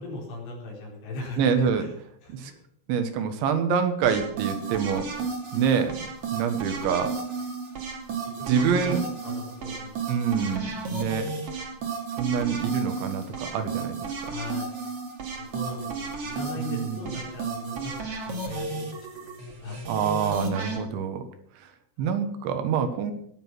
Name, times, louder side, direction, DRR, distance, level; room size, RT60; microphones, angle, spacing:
voice 1, 0.0-1.9 2.2-2.6 2.9-3.0 8.5-9.0 9.2-10.1 14.3-14.8 15.4-17.9 18.2-19.8 22.0-22.1, left 2 dB, 75° left, -1 dB, 6.6 m, -38 dB
voice 2, 1.4-1.9 2.3-2.5 2.9-5.1 5.5-6.0 6.3-7.2 8.5-9.0 10.1-11.3 12.2-14.0 16.6-17.2 19.9-21.2 22.0-23.1, right 7 dB, 75° right, 8 dB, 3.6 m, -26 dB
sound 1, 4.0-20.8, right 4 dB, 40° right, 2.5 m, -33 dB
20.0 x 7.9 x 6.1 m, 0.68 s
omnidirectional pair, 5.5 m